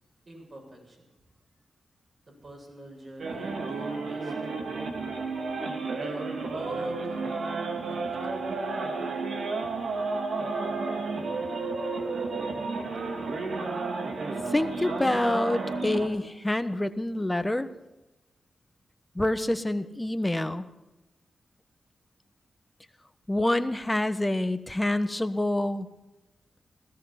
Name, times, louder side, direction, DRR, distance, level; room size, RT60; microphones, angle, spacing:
voice 1, 0.3-1.0 2.3-4.3 5.9-7.5 7.8-8.6, right 1 dB, 50° right, -1 dB, 7.6 m, -47 dB
sound 1, 3.2-16.1, right 3 dB, 75° right, 2.2 m, -32 dB
voice 2, 14.5-17.7 19.1-20.7 23.3-25.9, left 1 dB, 15° left, 10 dB, 1.2 m, -27 dB
16.5 x 14.0 x 5.9 m, 1.0 s
cardioid pair, 65°, 0 cm